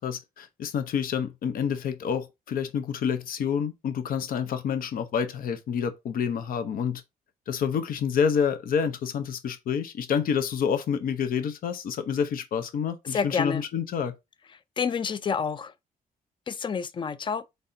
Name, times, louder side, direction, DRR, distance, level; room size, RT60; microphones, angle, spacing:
voice 1, 0.0-7.0 7.5-14.1, left 7 dB, 70° left, 0.8 m, -28 dB
voice 2, 13.1-13.6 14.8-15.7 16.5-17.4, left 6 dB, 30° left, 0.4 m, -28 dB
4.1 x 3.4 x 3.8 m
cardioid pair, 120°, 15 cm